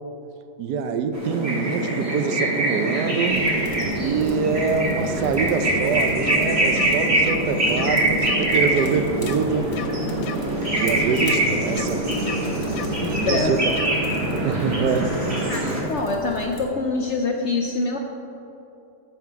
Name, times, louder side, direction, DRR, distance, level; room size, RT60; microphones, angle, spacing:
voice 1, 0.6-3.4 4.0-9.7 10.8-12.1 13.1-13.6 14.4-15.4, right 5 dB, 75° right, 8 dB, 1.2 m, -25 dB
sound 1, 1.1-15.8, right 1 dB, 35° right, 2.5 m, -23 dB
sound 2, 3.2-16.6, equal, 15° left, 0.9 m, -39 dB
sound 3, 6.2-6.4 6.7-6.9 7.2-7.4 7.7-7.9 8.2-8.4 8.7-8.9 9.2-9.4 9.7-9.9 10.2-10.4 10.7-10.9 11.2-11.4 11.7-11.9 12.2-12.4 12.7-12.9 13.2-13.4 13.7-13.9, left 11 dB, 85° left, 1.2 m, -34 dB
voice 2, 13.0-13.5 15.5-15.6 15.9-18.0, left 3 dB, 65° left, 2 dB, 0.7 m, -25 dB
14.0 x 5.8 x 4.7 m, 2.9 s
omnidirectional pair, 1.8 m